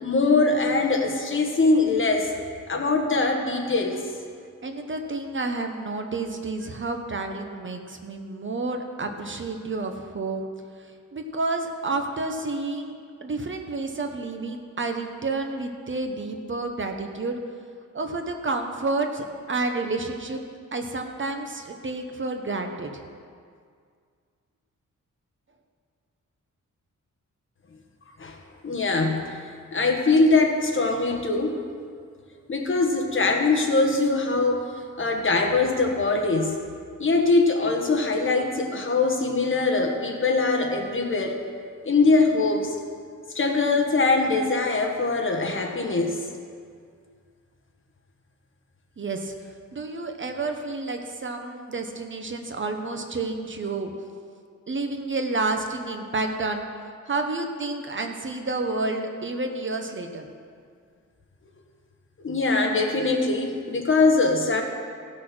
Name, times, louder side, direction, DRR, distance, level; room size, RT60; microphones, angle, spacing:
voice 1, 0.0-2.3 2.7-4.1 28.2-28.4 28.6-29.2 29.7-31.6 32.5-34.6 35.0-36.6 37.0-41.4 41.8-42.7 43.3-46.2 62.2-64.6, left 3 dB, 40° left, 2 dB, 1.3 m, -22 dB
voice 2, 4.6-10.5 11.1-12.9 13.2-17.4 17.9-20.4 20.7-22.9 49.0-49.3 49.7-53.9 54.7-56.6 57.0-60.3, right 3 dB, 40° right, 5 dB, 0.9 m, -30 dB
16.0 x 6.4 x 6.1 m, 2.1 s
wide cardioid pair, 145°, 31 cm